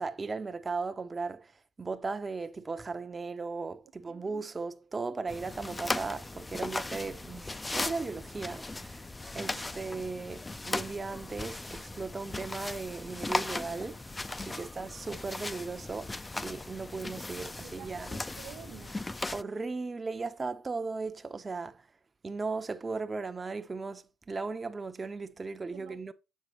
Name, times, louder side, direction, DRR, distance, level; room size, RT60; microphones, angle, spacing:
voice 1, 0.0-1.5 1.8-9.0 9.3-14.0 14.5-16.1 16.4-18.1 19.3-21.8 22.2-26.1, right 4 dB, 30° right, 0.7 m, -37 dB
sound 1, 5.3-19.4, left 2 dB, 20° left, 0.5 m, -38 dB
voice 2, 9.3-9.7 14.6-14.7 17.4-19.3 25.7-26.1, right 10 dB, 80° right, 0.7 m, -51 dB
7.4 x 6.5 x 3.0 m
cardioid pair, 90°, 0 cm